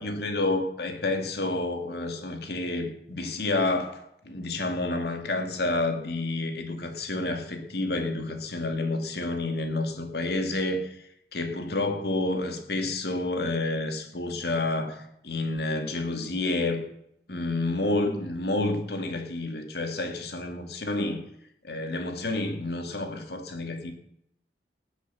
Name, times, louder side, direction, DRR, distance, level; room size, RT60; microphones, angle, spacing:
voice 1, 0.0-16.8 17.3-21.2 21.6-23.9, left 2 dB, 60° left, 5 dB, 2.3 m, -29 dB
19.0 x 8.2 x 7.0 m, 0.77 s
head